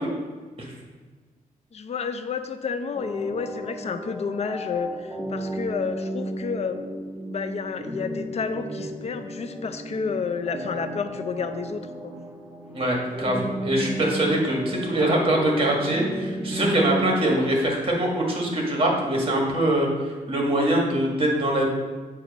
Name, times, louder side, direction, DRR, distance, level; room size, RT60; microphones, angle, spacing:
voice 1, 1.7-6.8 7.3-12.2, left 5 dB, 45° left, 9 dB, 0.5 m, -30 dB
sound 1, 2.9-17.2, right 1 dB, 15° right, 0.9 m, -33 dB
voice 2, 12.7-21.7, right 1 dB, 40° right, -1 dB, 1.6 m, -23 dB
7.6 x 2.8 x 5.2 m, 1.4 s
cardioid pair, 90°, 15 cm